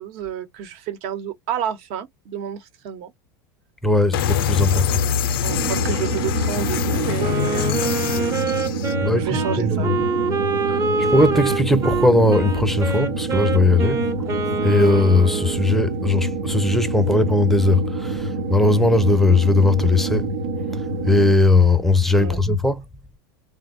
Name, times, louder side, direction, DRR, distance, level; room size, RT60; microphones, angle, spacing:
voice 1, 0.0-3.1 5.4-8.5 9.1-9.9 22.1-22.4, right 9 dB, 55° right, 1.1 m, -30 dB
voice 2, 3.8-5.0 9.0-9.9 10.6-20.3 20.7-22.8, left 2 dB, ahead, 0.6 m, -19 dB
sound 1, 4.1-8.9, left 8 dB, 75° left, 0.5 m, -24 dB
sound 2, 5.5-21.3, right 3 dB, 90° right, 1.1 m, -27 dB
Wind instrument woodwind instrument, 7.2-15.6, right 3 dB, 25° right, 0.9 m, -25 dB
3.5 x 2.3 x 3.9 m
hypercardioid pair, 110°, 12 cm